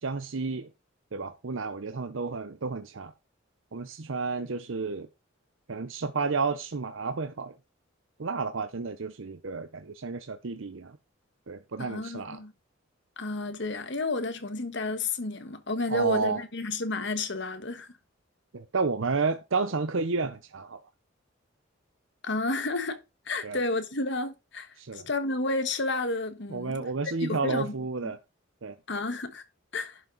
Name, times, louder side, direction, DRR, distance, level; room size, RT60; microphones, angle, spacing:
voice 1, 0.0-0.7 1.1-3.1 3.7-5.1 5.7-7.6 8.2-11.0 11.5-12.4 15.9-16.4 18.5-20.8 23.4-23.6 24.8-25.1 26.5-28.2 28.6-28.7, right 4 dB, 75° right, 0.7 m, -31 dB
voice 2, 11.8-12.5 13.2-17.9 22.2-23.0 23.3-26.8 27.2-27.7 28.0-28.1 28.9-29.4 29.7-30.0, left 2 dB, 60° left, 1.4 m, -31 dB
11.0 x 5.8 x 3.9 m
head